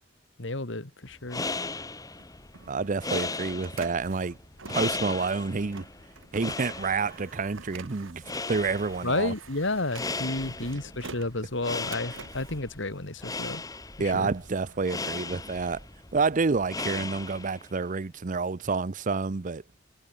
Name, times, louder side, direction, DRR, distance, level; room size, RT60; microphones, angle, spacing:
voice 1, 0.4-1.4 9.0-13.6 14.0-14.3, left 2 dB, 65° left, 2.3 m, -31 dB
sound 1, 1.1-17.7, left 3 dB, 20° left, 1.3 m, -37 dB
Printer, 2.2-13.6 14.0-15.9, right 5 dB, 75° right, 1.7 m, -49 dB
voice 2, 2.7-4.4 4.7-5.8 6.3-8.2 8.5-9.3 14.0-15.8 16.1-19.6, right 4 dB, 40° right, 0.6 m, -28 dB
head